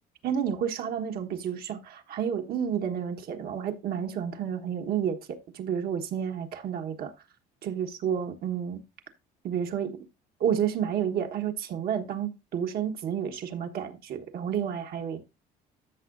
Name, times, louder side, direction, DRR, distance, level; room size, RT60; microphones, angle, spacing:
voice 1, 0.2-7.1 7.6-8.8 9.4-10.1 10.4-15.2, right 8 dB, 65° right, 1.3 m, -30 dB
13.5 x 6.2 x 2.6 m
cardioid pair, 110°, 17 cm